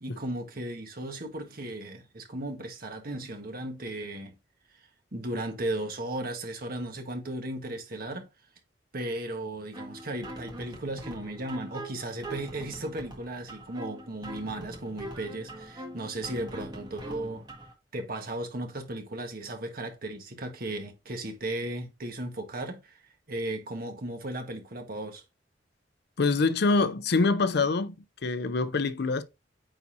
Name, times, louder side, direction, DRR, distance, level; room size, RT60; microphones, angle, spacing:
voice 1, 0.0-4.3 5.1-8.3 8.9-17.4 17.9-23.0 23.3-25.2, right 1 dB, 55° right, 1.5 m, -36 dB
sound 1, 9.7-17.7, right 1 dB, 25° right, 1.6 m, -42 dB
voice 2, 26.2-28.0 28.2-29.2, left 3 dB, 60° left, 0.6 m, -25 dB
9.0 x 4.1 x 2.7 m
head